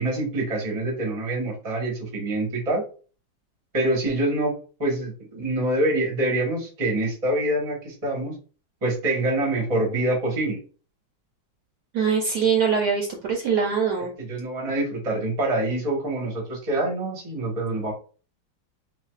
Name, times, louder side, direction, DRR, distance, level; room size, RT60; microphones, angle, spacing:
voice 1, 0.0-2.8 3.7-4.5 4.8-8.4 8.8-10.6 14.2-17.9, right 1 dB, 30° right, 0 dB, 0.6 m, -25 dB
voice 2, 11.9-14.1, right 6 dB, 75° right, 1 dB, 1.0 m, -23 dB
4.0 x 2.4 x 2.3 m, 0.39 s
omnidirectional pair, 2.2 m